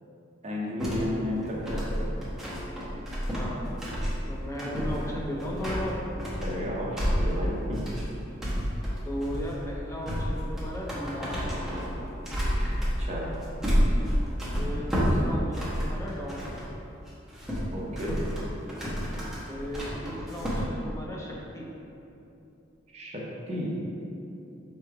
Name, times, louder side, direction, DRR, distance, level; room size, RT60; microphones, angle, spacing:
voice 1, 0.4-2.1 6.4-7.8 12.8-13.3 17.7-18.2 22.9-23.2 23.5-23.8, left 1 dB, 35° right, -4 dB, 0.8 m, -33 dB
sound 1, 0.8-16.7 17.1-20.6, equal, ahead, 0.9 m, -30 dB
voice 2, 1.4-1.9 3.3-3.7 4.3-6.0 9.1-11.4 13.9-14.2 14.6-16.5 19.5-21.7, equal, 15° left, -3 dB, 0.6 m, -36 dB
3.3 x 3.1 x 4.7 m, 2.9 s
head